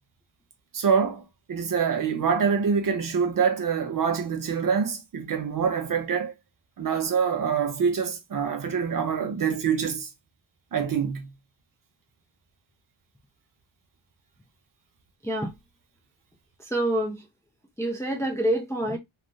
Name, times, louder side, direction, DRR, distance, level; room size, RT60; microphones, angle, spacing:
voice 1, 0.7-1.2 1.5-6.3 6.8-10.1 10.7-11.3, right 6 dB, 40° right, 0.6 m, -25 dB
voice 2, 16.7-17.2 17.8-19.0, right 1 dB, 5° left, 0.4 m, -26 dB
3.2 x 2.3 x 2.5 m
wide cardioid pair, 155°, 50 cm